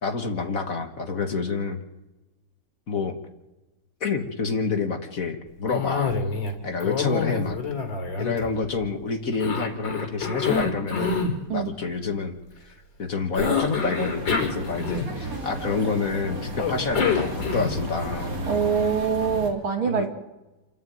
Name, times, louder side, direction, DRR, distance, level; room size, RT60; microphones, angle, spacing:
voice 1, 0.0-1.8 2.9-3.1 4.0-6.1 6.6-7.6 8.2-11.2 11.5-12.4 12.6-12.7 13.0-18.4 19.9-20.1, left 4 dB, 45° left, 7 dB, 1.8 m, -28 dB
Cough, 5.7-6.5 6.8-8.9 9.4-11.4 13.3-15.4 16.6-17.9, left 5 dB, 60° left, 3.5 m, -27 dB
sound 1, 13.4-19.5, right 1 dB, 40° right, 3.8 m, -34 dB
voice 2, 18.5-20.1, right 6 dB, 80° right, 4 dB, 3.4 m, -24 dB
29.0 x 11.0 x 9.2 m, 1.1 s
omnidirectional pair, 2.3 m